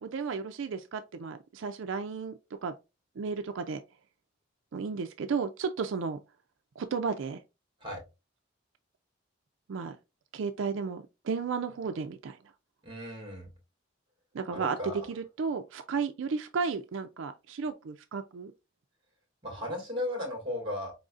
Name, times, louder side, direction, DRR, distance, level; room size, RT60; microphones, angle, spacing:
voice 1, 0.0-2.7 3.2-3.8 4.7-6.2 6.8-7.4 9.7-10.0 10.3-12.4 14.3-18.5, right 5 dB, 75° right, 0.4 m, -33 dB
voice 2, 12.8-13.5 14.5-15.1 19.4-20.9, left 1 dB, 25° right, 1.9 m, -35 dB
4.7 x 3.8 x 2.4 m
head